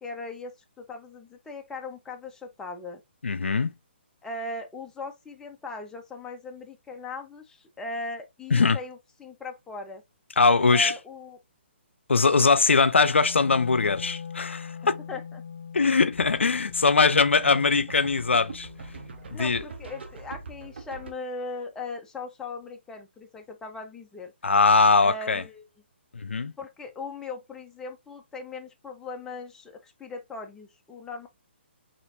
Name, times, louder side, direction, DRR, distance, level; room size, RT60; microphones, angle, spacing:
voice 1, 0.0-3.0 4.2-10.0 10.7-11.4 15.1-15.4 19.3-24.3 25.0-25.7 26.6-31.3, left 3 dB, 10° left, 0.6 m, -39 dB
voice 2, 3.2-3.7 8.5-8.8 10.4-10.9 12.1-15.0 15.7-18.7 19.3-19.6 24.4-25.4 26.1-26.5, left 4 dB, 90° left, 0.4 m, -21 dB
Wind instrument woodwind instrument, 13.1-19.3, left 6 dB, 70° left, 0.9 m, -41 dB
sound 1, 16.1-21.1, right 4 dB, 70° right, 0.9 m, -42 dB
4.2 x 2.9 x 2.6 m
hypercardioid pair, 145°, 6 cm